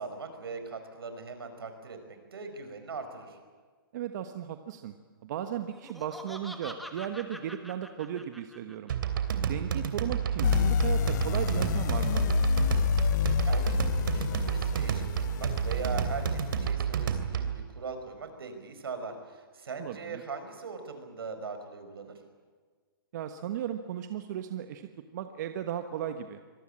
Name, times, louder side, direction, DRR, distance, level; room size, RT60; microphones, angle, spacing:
voice 1, 0.0-3.4 13.4-22.2, right 4 dB, 85° right, 7 dB, 5.2 m, -40 dB
voice 2, 3.9-4.9 5.2-8.9 9.5-12.3 19.8-20.2 23.1-26.4, right 10 dB, 50° right, 7 dB, 1.3 m, -36 dB
Laughter, 5.7-8.9, equal, ahead, 1.5 m, -45 dB
sound 1, 8.9-17.6, right 8 dB, 65° right, 3.0 m, -30 dB
sound 2, 10.4-16.7, left 8 dB, 50° left, 0.7 m, -29 dB
25.0 x 19.5 x 8.8 m, 1.5 s
hypercardioid pair, 145°, 12 cm